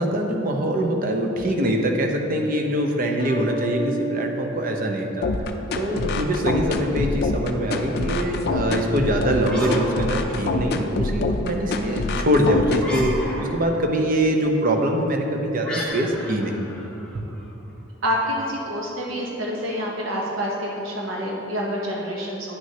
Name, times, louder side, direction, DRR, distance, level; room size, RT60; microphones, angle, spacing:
voice 1, 0.0-5.3 5.7-16.7 17.1-17.2, right 1 dB, 45° right, 3 dB, 0.7 m, -23 dB
sound 1, 3.2-5.8, right 1 dB, 25° left, 0.8 m, -32 dB
sound 2, 5.2-13.2, left 3 dB, 50° left, 0.4 m, -26 dB
sound 3, 9.4-10.9 12.7-13.8 15.6-17.5, left 1 dB, 5° left, 1.2 m, -33 dB
voice 2, 18.0-22.6, equal, 75° right, -2 dB, 0.9 m, -27 dB
9.6 x 6.2 x 2.8 m, 3.0 s
head